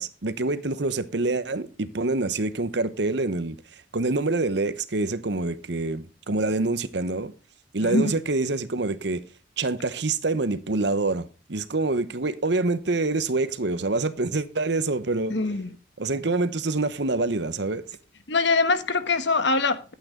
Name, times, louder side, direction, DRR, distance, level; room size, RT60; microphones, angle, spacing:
voice 1, 0.0-7.3 7.7-9.2 9.6-15.4 16.0-17.8, right 3 dB, 65° right, 0.9 m, -26 dB
voice 2, 7.8-8.1 15.3-15.7 18.3-19.9, left 3 dB, 70° left, 1.3 m, -23 dB
12.0 x 8.7 x 3.7 m
head